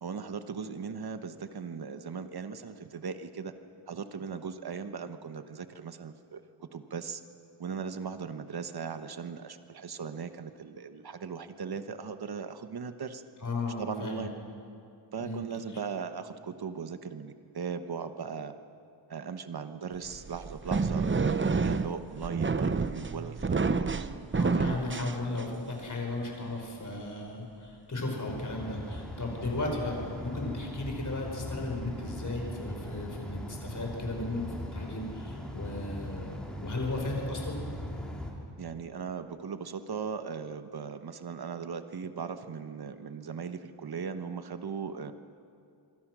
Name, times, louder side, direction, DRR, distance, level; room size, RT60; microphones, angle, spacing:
voice 1, 0.0-3.5 3.9-6.4 6.7-7.2 7.6-13.2 13.8-14.3 15.1-18.5 19.1-24.1 38.6-45.1, right 6 dB, 55° right, 9 dB, 1.2 m, -38 dB
voice 2, 13.4-14.3 15.2-15.4 24.3-37.7, left 2 dB, 40° left, 1 dB, 5.3 m, -35 dB
sound 1, 20.1-25.7, right 4 dB, 25° right, 0.7 m, -29 dB
sound 2, 28.3-38.3, equal, ahead, 3.2 m, -40 dB
26.5 x 23.5 x 6.2 m, 2.5 s
wide cardioid pair, 155°, 45 cm